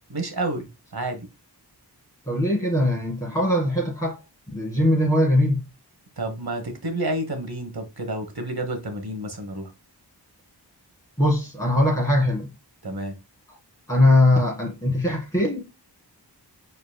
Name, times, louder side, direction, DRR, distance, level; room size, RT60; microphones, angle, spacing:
voice 1, 0.1-1.3 6.2-9.7 12.8-13.2, right 1 dB, 60° right, 1.2 m, -30 dB
voice 2, 2.3-4.2 4.5-5.6 11.2-12.5 13.9-15.6, left 1 dB, 10° left, 1.8 m, -21 dB
4.7 x 4.0 x 2.2 m
wide cardioid pair, 40°, 42 cm